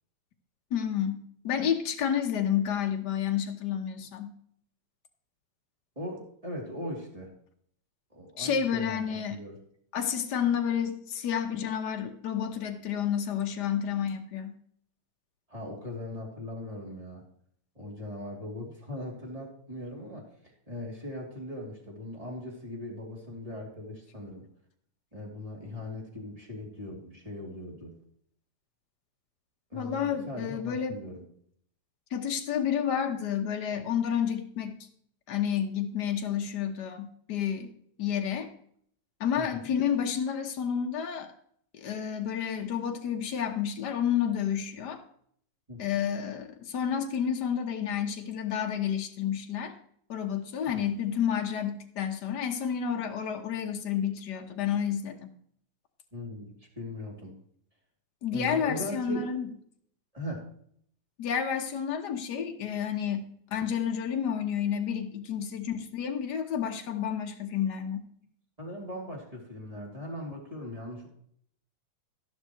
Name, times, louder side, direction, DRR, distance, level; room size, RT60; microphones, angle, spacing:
voice 1, 0.7-4.3 8.4-9.4 9.9-14.5 29.7-31.0 32.1-34.9 35.3-37.7 38.0-38.5 39.2-41.3 41.7-45.0 45.8-49.7 50.1-55.3 58.2-59.5 61.2-68.1, left 8 dB, 60° left, 4 dB, 1.1 m, -30 dB
voice 2, 5.9-7.3 8.1-9.6 15.5-17.2 17.7-20.3 20.7-24.5 25.1-27.9 29.7-31.2 39.3-39.7 45.7-45.8 50.7-50.9 56.1-57.3 58.3-59.3 60.1-60.4 68.6-71.1, left 1 dB, 10° right, -2 dB, 2.9 m, -39 dB
13.0 x 11.0 x 3.2 m, 0.64 s
omnidirectional pair, 3.4 m